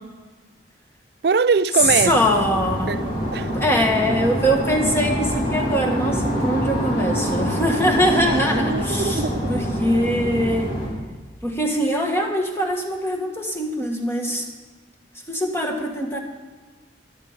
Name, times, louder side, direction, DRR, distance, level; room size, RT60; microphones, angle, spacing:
voice 1, 1.2-2.1 2.9-3.5 8.6-9.6, right 5 dB, 55° right, 0.4 m, -22 dB
sound 1, 1.8-10.9, equal, 45° left, 3.3 m, -25 dB
voice 2, 1.8-3.0 3.5-10.7 11.4-14.5 15.3-16.2, equal, 15° left, 1.7 m, -22 dB
13.5 x 12.0 x 5.2 m
head